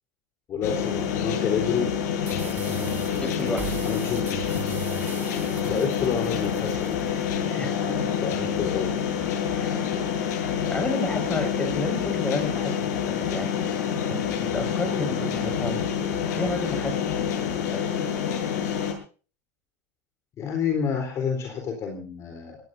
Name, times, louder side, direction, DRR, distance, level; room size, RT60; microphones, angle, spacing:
voice 1, 0.5-2.9 3.8-4.5 5.6-7.7 8.2-9.0 9.5-9.6 20.4-22.6, left 6 dB, 30° left, 4 dB, 4.0 m, -29 dB
sound 1, 0.6-18.9, left 8 dB, 75° left, 7.4 m, -27 dB
sound 2, 2.3-7.3, right 8 dB, 20° right, 3.3 m, -39 dB
voice 2, 3.2-3.8 7.6-8.1 9.6-9.8 10.7-15.9 16.4-17.2 17.7-17.9, left 2 dB, 10° left, 5 dB, 6.4 m, -31 dB
23.0 x 18.5 x 2.8 m, 0.38 s
supercardioid pair, 135°, 9 cm